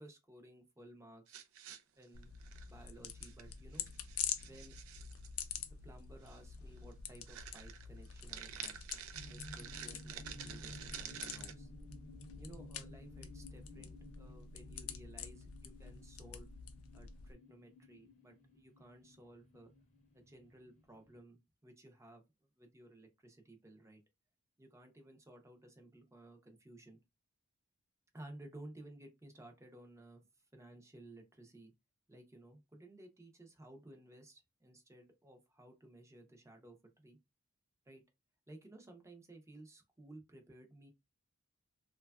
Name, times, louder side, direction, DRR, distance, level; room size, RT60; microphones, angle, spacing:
voice 1, 0.0-1.4 2.0-2.3 2.7-3.8 4.4-4.7 5.6-8.8 9.3-11.7 12.4-16.5 16.9-19.7 20.1-22.2 22.6-24.0 24.6-27.0 28.1-30.2 30.5-31.7 32.1-37.2 37.9-38.0 38.5-40.9, right 1 dB, 15° right, 0.6 m, -56 dB
sound 1, 1.3-2.8 3.2-3.5 3.7-5.3 6.3-6.4 6.8-6.9 7.3-11.5, right 9 dB, 70° right, 0.4 m, -49 dB
sound 2, 2.1-17.3, left 8 dB, 80° left, 0.4 m, -47 dB
sound 3, 9.1-21.2, left 1 dB, 35° left, 0.8 m, -56 dB
3.1 x 2.3 x 2.2 m
head